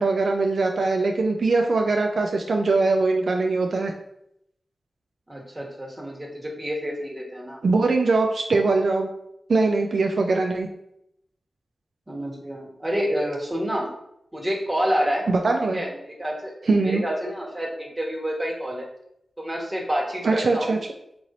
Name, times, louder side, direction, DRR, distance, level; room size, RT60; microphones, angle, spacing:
voice 1, 0.0-3.9 7.6-9.1 9.5-10.7 15.3-15.8 16.7-17.0 20.2-20.8, right 3 dB, 75° right, 3 dB, 0.3 m, -21 dB
voice 2, 5.3-7.6 12.1-13.9 14.3-15.2 15.7-16.5 16.8-18.9 19.4-20.8, equal, 20° right, -3 dB, 1.2 m, -28 dB
3.1 x 2.6 x 4.0 m, 0.77 s
cardioid pair, 50°, 0 cm